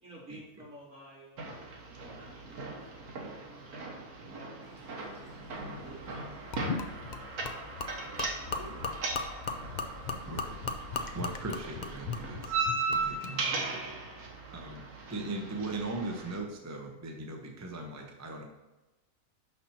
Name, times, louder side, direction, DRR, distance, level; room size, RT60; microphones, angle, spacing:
voice 1, 0.0-3.6 5.7-6.5 8.3-9.9, right 1 dB, 55° right, -7 dB, 3.1 m, -54 dB
sound 1, 1.4-16.4, right 3 dB, 75° right, 1.7 m, -38 dB
sound 2, 4.6-11.2, left 1 dB, 35° left, 2.5 m, -54 dB
Gurgling / Liquid, 6.5-13.3, left 4 dB, 70° left, 0.4 m, -38 dB
voice 2, 10.2-10.6 11.1-13.8 14.5-14.8 15.1-18.4, right 2 dB, 15° right, 1 dB, 0.6 m, -39 dB
6.3 x 5.9 x 4.3 m, 1.1 s
omnidirectional pair, 1.6 m